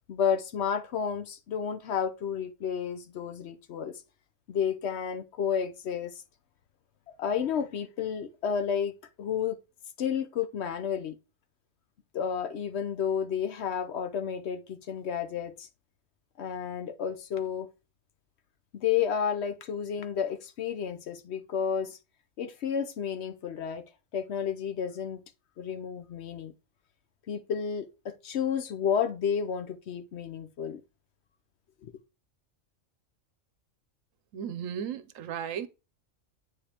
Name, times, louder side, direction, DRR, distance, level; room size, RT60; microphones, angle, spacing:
voice 1, 0.0-4.0 4.5-6.1 7.2-8.9 9.2-9.6 10.0-11.2 12.1-15.7 16.4-17.7 18.7-22.0 22.4-23.8 24.1-25.2 25.6-26.5 27.3-30.8 31.8-31.9, left 7 dB, 60° left, 0.9 m, -31 dB
voice 2, 34.3-35.7, right 8 dB, 85° right, 1.0 m, -35 dB
8.5 x 5.0 x 2.9 m
omnidirectional pair, 1.3 m